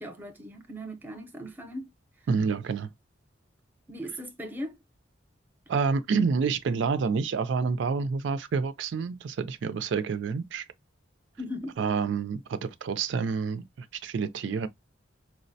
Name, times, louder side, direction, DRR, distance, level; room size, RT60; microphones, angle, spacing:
voice 1, 0.0-1.9 3.9-4.7 11.4-11.9, equal, 10° right, 0.6 m, -38 dB
voice 2, 2.3-2.9 5.7-10.6 11.8-14.7, right 5 dB, 70° right, 0.3 m, -28 dB
4.5 x 2.1 x 2.6 m
head